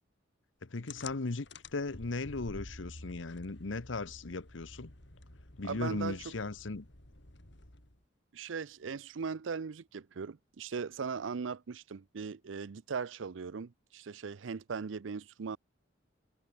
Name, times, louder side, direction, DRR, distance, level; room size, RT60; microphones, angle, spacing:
voice 1, 0.6-4.9 5.6-6.9, left 3 dB, 85° left, 1.0 m, -37 dB
sound 1, 0.9-8.0, left 2 dB, 65° left, 3.6 m, -51 dB
voice 2, 5.6-6.3 8.3-15.6, right 5 dB, 85° right, 0.5 m, -39 dB
head